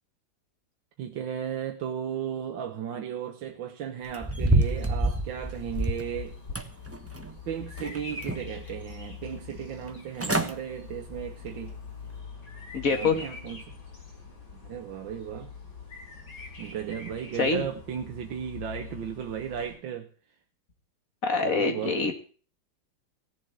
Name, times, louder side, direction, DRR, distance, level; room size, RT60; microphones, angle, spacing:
voice 1, 1.0-6.4 7.5-11.8 12.9-13.8 14.5-15.5 16.6-20.1 21.4-22.1, right 9 dB, 75° right, 4 dB, 1.7 m, -35 dB
sound 1, 4.1-6.1 6.6-7.4 7.8-8.6 9.0-9.1 9.9-10.0 10.2-10.5 11.0-11.2 11.7-11.8, right 2 dB, 10° right, 0.7 m, -27 dB
Bird vocalization bird call bird song, 4.6-19.7, left 5 dB, 65° left, 5.4 m, -43 dB
voice 2, 12.7-13.2 17.4-17.7 21.2-22.1, left 4 dB, 45° left, 6 dB, 2.4 m, -25 dB
16.5 x 7.3 x 7.9 m, 0.41 s
omnidirectional pair, 2.1 m